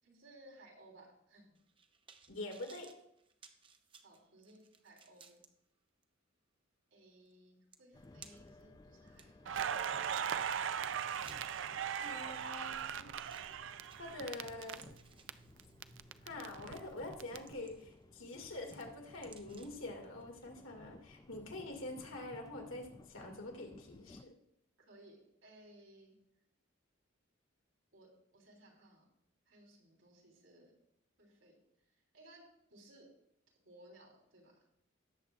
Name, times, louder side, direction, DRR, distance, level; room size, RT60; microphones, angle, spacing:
voice 1, 0.0-1.6 4.0-5.4 6.9-9.7 24.8-26.1 27.9-29.0 29.5-30.7 31.2-31.6 31.9-32.4 32.7-33.1 33.6-34.6, right 1 dB, 85° right, -1 dB, 3.4 m, -60 dB
sound 1, 1.5-5.5 6.0-6.1 7.3-7.4 7.7-8.6 9.1-12.2 13.3-13.6 13.9-14.3 14.6-15.9 16.4-16.7 17.1-18.0 18.3-19.9 20.2-20.3, right 6 dB, 25° right, 0.6 m, -60 dB
voice 2, 2.3-2.9 12.0-13.1 14.0-14.8 16.2-24.3, left 2 dB, 90° left, 1 dB, 2.1 m, -45 dB
sound 2, 7.9-24.2, left 2 dB, 20° left, 0.3 m, -59 dB
Crackle, 9.5-15.3 15.6-17.4, right 8 dB, 65° right, 0.4 m, -39 dB
18.0 x 7.3 x 2.4 m, 0.79 s
head